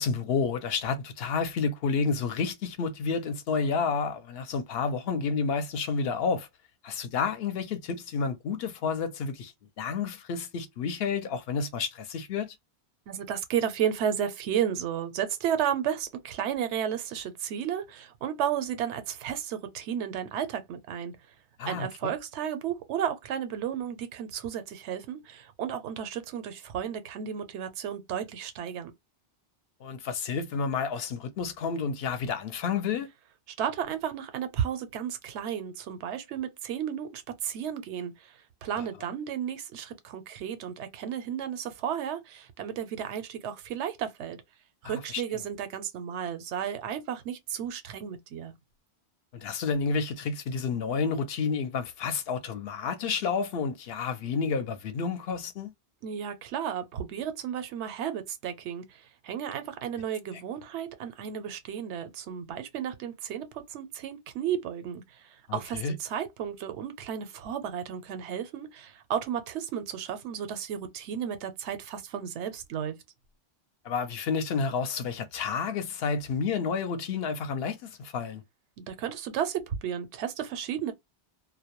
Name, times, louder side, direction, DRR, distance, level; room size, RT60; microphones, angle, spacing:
voice 1, 0.0-6.5 6.8-9.5 9.8-12.5 21.6-22.1 29.8-33.1 38.8-38.9 44.8-45.2 49.3-55.7 65.5-66.0 73.8-78.4, left 5 dB, 70° left, 0.7 m, -30 dB
voice 2, 13.1-21.1 21.6-28.9 33.6-44.4 44.8-48.5 56.0-65.0 65.5-72.9 78.8-80.9, right 9 dB, 85° right, 0.9 m, -33 dB
2.2 x 2.0 x 2.8 m
omnidirectional pair, 1.1 m